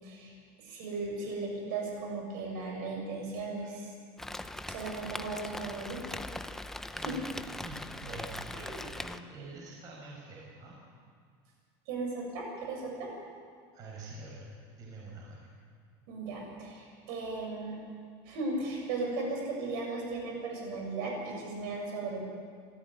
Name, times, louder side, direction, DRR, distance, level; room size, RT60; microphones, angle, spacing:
voice 1, 0.0-3.9 4.7-6.2 6.9-7.1 11.9-13.1 16.1-17.9 18.2-22.3, right 3 dB, 60° right, 1 dB, 7.3 m, -36 dB
Rain, 4.2-9.2, left 2 dB, 5° left, 0.5 m, -40 dB
voice 2, 6.9-7.2 7.6-10.8 13.7-14.5 14.8-15.5, right 2 dB, 30° right, -3 dB, 5.2 m, -46 dB
26.0 x 14.5 x 9.6 m, 2.1 s
cardioid pair, 175°, 12 cm